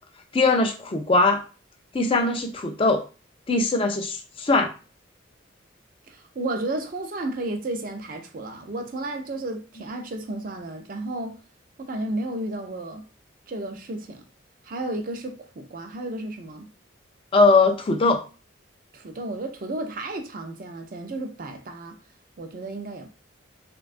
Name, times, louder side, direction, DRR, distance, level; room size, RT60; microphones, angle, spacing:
voice 1, 0.3-1.4 1.9-3.0 3.5-4.7 17.3-18.2, left 3 dB, 25° left, 0.4 m, -20 dB
voice 2, 6.1-11.4 11.8-13.0 13.5-14.2 14.6-16.7 18.9-22.0 22.4-23.1, right 2 dB, 45° right, 0.4 m, -32 dB
3.3 x 2.2 x 2.4 m
head